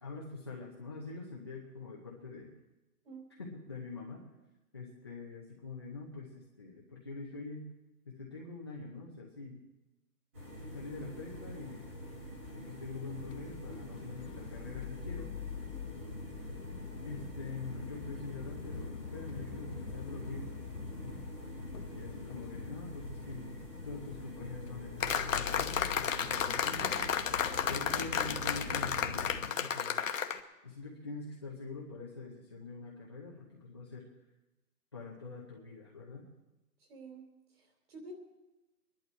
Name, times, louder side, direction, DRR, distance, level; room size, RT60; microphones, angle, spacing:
voice 1, 0.0-2.5 3.4-4.2 4.7-7.7 8.0-9.6 10.7-11.8 12.5-15.3 17.0-20.5 21.0-21.2 21.9-27.4 27.7-30.0 30.6-34.0 34.9-36.3, left 3 dB, 15° left, -4 dB, 0.8 m, -44 dB
sound 1, 10.3-29.4, equal, 10° right, 1.0 m, -46 dB
sound 2, 13.1-29.5, left 8 dB, 80° left, 0.9 m, -46 dB
sound 3, 25.0-30.4, left 7 dB, 55° left, 1.0 m, -32 dB
voice 2, 36.8-37.2 37.5-38.1, right 3 dB, 40° right, 2 dB, 3.5 m, -50 dB
23.5 x 11.0 x 4.4 m, 1.0 s
hypercardioid pair, 175°, 48 cm